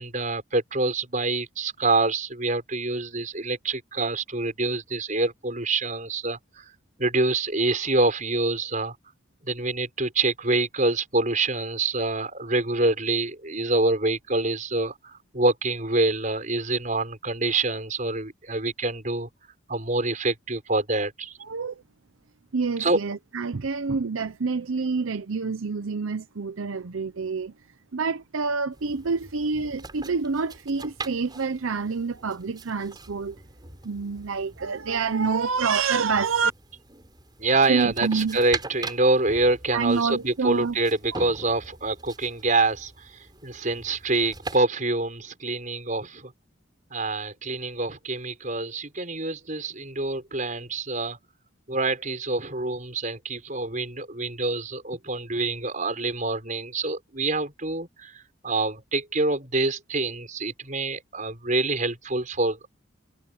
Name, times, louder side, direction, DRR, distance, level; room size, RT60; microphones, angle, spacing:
voice 1, 0.0-6.6 7.0-8.9 9.4-19.3 19.7-21.3 22.8-23.0 37.4-43.1 43.4-46.3 46.9-51.2 51.7-62.8, right 2 dB, 40° right, 6.0 m, -26 dB
voice 2, 21.4-21.7 22.5-27.5 27.9-33.4 33.8-36.5 37.7-38.4 39.7-40.8, right 5 dB, 80° right, 0.7 m, -27 dB
sound 1, 28.7-44.6, right 3 dB, 20° right, 6.0 m, -41 dB
head